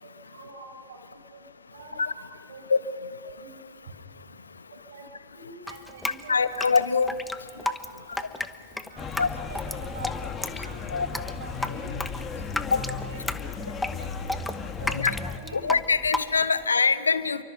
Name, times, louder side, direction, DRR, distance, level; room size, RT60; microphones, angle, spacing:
voice 1, 0.0-1.0 1.3-1.4 1.7-2.0 2.5-2.6 3.4-3.6 4.9-5.1 5.3-6.6 7.4-8.1 8.9-14.3 14.8-15.8 16.2-16.6, right 3 dB, 60° right, 3 dB, 5.5 m, -45 dB
Drip, 5.7-16.7, left 2 dB, 5° left, 1.0 m, -33 dB
voice 2, 6.3-7.1 9.2-9.3 10.9-11.1 12.7-12.8 15.0-15.1 15.5-17.4, left 5 dB, 75° left, 15 dB, 1.0 m, -23 dB
sound 1, 9.0-15.4, left 5 dB, 20° left, 2.0 m, -35 dB
29.5 x 24.0 x 5.7 m, 2.3 s
figure-of-eight pair, 90°, 0 cm